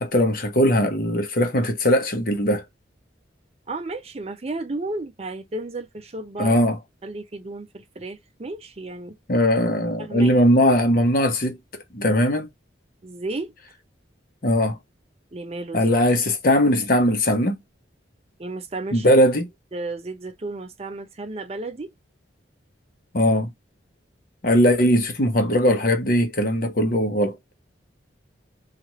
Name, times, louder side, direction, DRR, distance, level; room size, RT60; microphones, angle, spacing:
voice 1, 0.0-2.6 6.4-6.8 9.3-11.6 11.9-12.5 14.4-14.8 15.7-17.6 18.9-19.5 23.1-23.5 24.4-27.4, equal, 50° left, 0.8 m, -19 dB
voice 2, 3.7-6.5 7.0-9.2 10.0-10.3 13.0-13.5 15.3-15.9 18.4-19.2 19.7-21.9 24.5-24.6, right 2 dB, 30° right, 0.5 m, -33 dB
2.8 x 2.4 x 3.0 m
head